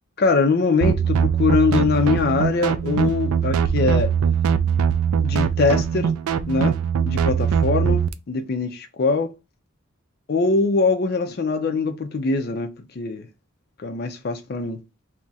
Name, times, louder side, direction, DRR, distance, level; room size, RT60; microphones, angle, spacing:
voice 1, 0.2-4.1 5.2-6.1 6.5-6.8 7.0-9.3 10.3-13.3 13.8-14.8, left 4 dB, 50° left, 0.4 m, -22 dB
sound 1, 0.8-8.1, right 7 dB, 85° right, 0.3 m, -21 dB
2.3 x 2.1 x 3.9 m
head